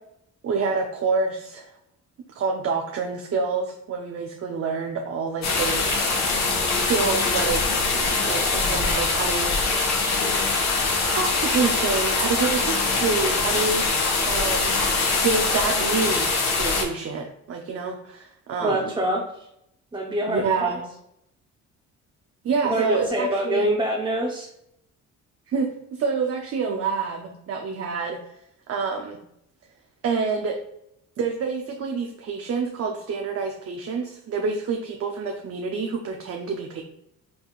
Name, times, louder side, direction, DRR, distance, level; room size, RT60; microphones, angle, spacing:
voice 1, 0.4-1.7 2.3-5.8 6.6-7.6 7.9-10.1 11.1-13.9 14.2-14.8 15.1-18.9 20.3-20.8 22.4-23.7 25.5-28.2 28.7-29.2 30.0-30.6 31.2-36.8, right 5 dB, 50° right, 2 dB, 0.7 m, -27 dB
sound 1, 5.4-16.8, left 3 dB, 65° left, 1.4 m, -23 dB
voice 2, 18.6-19.4 19.9-20.7 22.7-24.5, right 1 dB, 15° right, -1 dB, 0.8 m, -25 dB
5.0 x 4.1 x 2.4 m, 0.78 s
cardioid pair, 90°, 30 cm